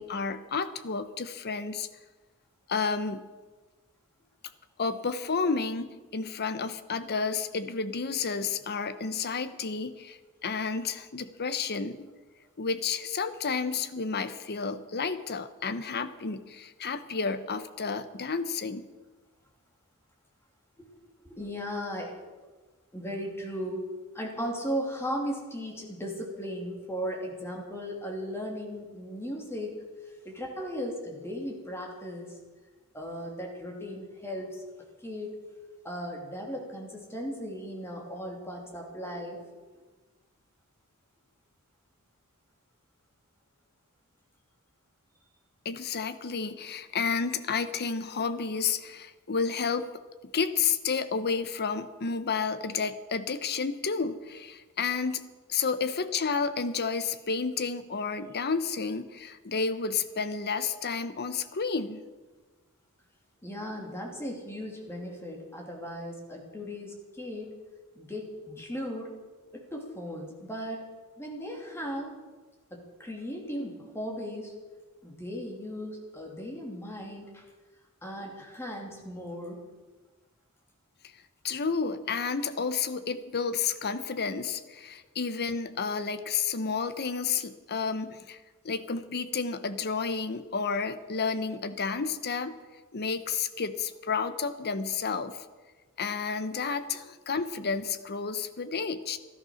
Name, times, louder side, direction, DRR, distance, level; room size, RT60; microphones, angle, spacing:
voice 1, 0.0-1.9 2.7-3.3 4.8-12.1 12.6-18.9 45.6-49.9 50.3-62.0 81.4-88.4 88.6-92.6 92.9-95.5 96.0-99.2, left 5 dB, 45° left, 11 dB, 0.9 m, -31 dB
voice 2, 21.2-22.1 22.9-23.8 24.1-32.4 32.9-34.6 35.0-35.4 35.8-39.6 63.4-67.5 67.9-69.1 69.5-70.9 71.2-72.1 72.7-74.5 75.0-77.4 78.0-79.6, equal, 10° left, 0 dB, 2.8 m, -37 dB
13.5 x 12.5 x 6.4 m, 1.3 s
head